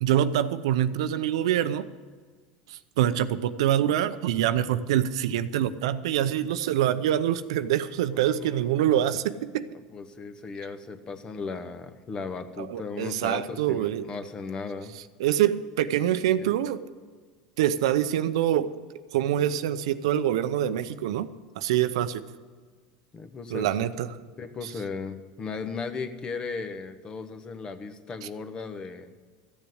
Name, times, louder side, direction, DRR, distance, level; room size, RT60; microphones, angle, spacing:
voice 1, 0.0-1.9 2.7-9.7 12.6-14.0 15.2-16.8 17.6-18.7 19.1-21.3 21.6-22.3 23.5-24.1, right 11 dB, 80° right, 12 dB, 0.7 m, -25 dB
voice 2, 8.1-8.8 9.9-14.9 16.4-16.5 23.1-23.9 24.4-29.1, left 4 dB, 30° left, 9 dB, 1.3 m, -36 dB
14.0 x 7.2 x 8.0 m, 1.5 s
supercardioid pair, 105°, 3 cm